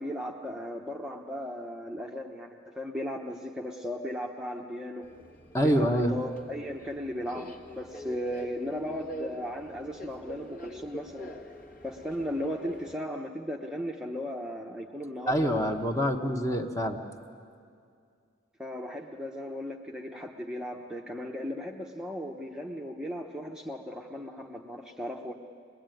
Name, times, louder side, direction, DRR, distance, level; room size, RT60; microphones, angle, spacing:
voice 1, 0.0-5.1 5.6-11.3 11.8-15.6 18.6-25.3, equal, 5° right, 0 dB, 0.9 m, -36 dB
Subway metro underground, 5.0-12.9, equal, 45° left, 1.6 m, -45 dB
voice 2, 5.5-6.2 15.3-17.0, equal, 15° left, 4 dB, 1.2 m, -26 dB
23.5 x 20.5 x 9.1 m, 2.3 s
head